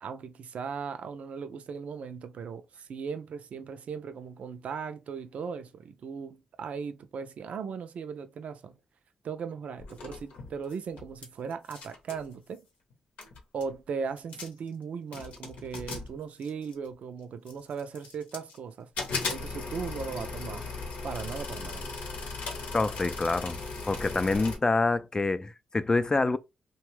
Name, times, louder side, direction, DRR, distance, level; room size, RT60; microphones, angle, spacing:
voice 1, 0.0-8.8 9.2-12.7 13.5-20.7 21.0-22.0, right 6 dB, 70° right, 0.4 m, -38 dB
sound 1, 9.8-11.3 11.5-12.3 12.9-13.0 13.2-13.7 14.2-14.7 15.1-16.9 17.5-18.6 19.0-24.6, left 4 dB, 85° left, 0.8 m, -37 dB
voice 2, 22.7-23.6 23.9-26.4, left 3 dB, 30° left, 0.4 m, -26 dB
2.9 x 2.2 x 3.1 m
supercardioid pair, 50°, 2 cm